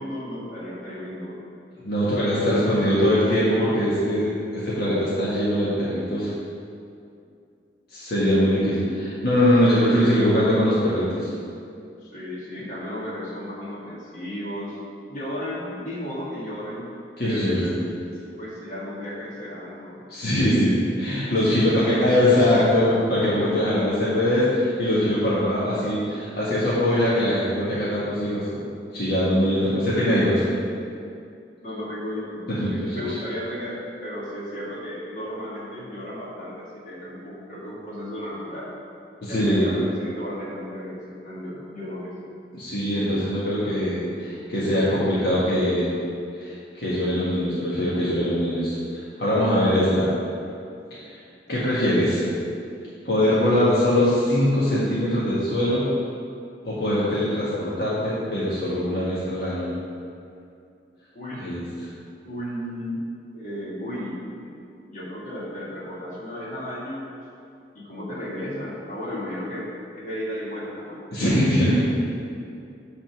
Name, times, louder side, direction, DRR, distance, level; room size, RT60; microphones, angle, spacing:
voice 1, 0.0-1.4 8.2-8.8 9.9-10.6 12.0-14.8 15.1-17.8 18.4-20.0 21.3-21.8 23.5-23.8 29.6-29.8 31.6-38.7 39.3-42.1 61.1-61.5 62.2-63.0 63.3-64.2 64.4-64.5 64.9-67.1 67.7-71.0, left 1 dB, 45° left, -7 dB, 2.1 m, -34 dB
voice 2, 1.8-6.3 7.9-11.3 17.2-17.8 20.1-28.6 28.9-30.4 32.5-33.0 39.2-39.7 42.5-45.9 46.4-50.1 51.5-52.2 53.1-55.9 56.7-59.7 61.4-61.7 71.1-71.8, left 1 dB, 60° left, -10 dB, 1.7 m, -22 dB
9.4 x 4.2 x 5.9 m, 2.5 s
head